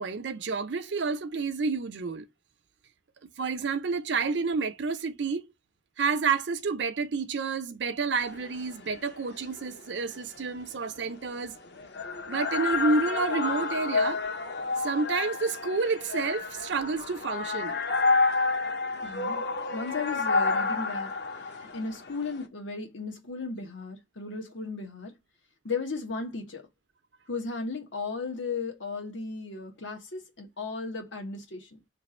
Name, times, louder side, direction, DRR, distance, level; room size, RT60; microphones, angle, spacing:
voice 1, 0.0-2.3 3.4-5.5 6.0-11.5 12.3-14.2 14.8-17.8, right 4 dB, 70° right, 0.6 m, -29 dB
sound 1, 8.2-22.4, left 4 dB, 60° left, 0.8 m, -30 dB
voice 2, 19.0-19.4 19.7-21.1 21.4-25.1 25.6-26.7 27.3-31.8, left 4 dB, 85° left, 1.3 m, -35 dB
3.3 x 2.5 x 4.2 m
head